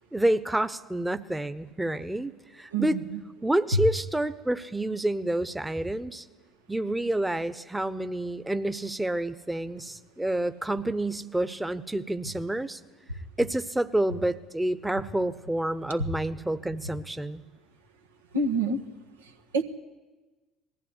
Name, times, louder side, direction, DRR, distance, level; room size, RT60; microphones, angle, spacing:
voice 1, 0.1-3.0 3.4-6.2 6.7-12.8 13.4-17.4, right 1 dB, 10° right, 11 dB, 1.0 m, -28 dB
voice 2, 2.7-3.2 3.7-3.8 16.0-16.1 18.3-18.8 19.2-19.6, right 2 dB, 85° right, 2 dB, 1.5 m, -27 dB
20.5 x 14.5 x 9.8 m, 1.2 s
hypercardioid pair, 60°, 0 cm